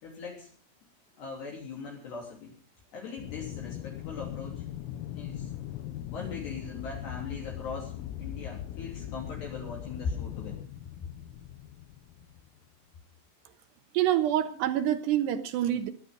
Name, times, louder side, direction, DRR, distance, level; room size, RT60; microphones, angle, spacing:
voice 1, 0.0-0.5 1.2-2.5 2.9-4.6 5.1-5.5 6.1-7.9 8.2-10.6, left 5 dB, 55° left, -2 dB, 5.2 m, -39 dB
Aircraft, 3.2-12.6, left 12 dB, 85° left, 3.8 m, -40 dB
voice 2, 13.9-15.9, right 11 dB, 75° right, 9 dB, 2.7 m, -26 dB
21.5 x 11.0 x 5.4 m, 0.42 s
omnidirectional pair, 6.0 m